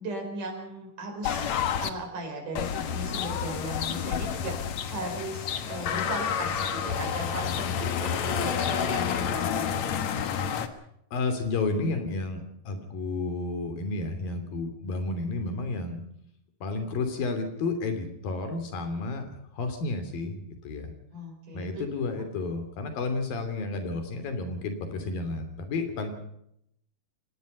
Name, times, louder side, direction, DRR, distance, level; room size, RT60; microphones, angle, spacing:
voice 1, 0.0-9.8 21.1-21.7, right 1 dB, 60° right, 2 dB, 6.3 m, -37 dB
sound 1, 1.2-1.9 2.5-10.7, left 8 dB, 60° left, 2.4 m, -29 dB
voice 2, 11.1-16.0 16.6-20.9 21.5-26.2, left 3 dB, 80° left, 8 dB, 4.8 m, -31 dB
25.5 x 19.0 x 5.6 m, 0.74 s
omnidirectional pair, 4.0 m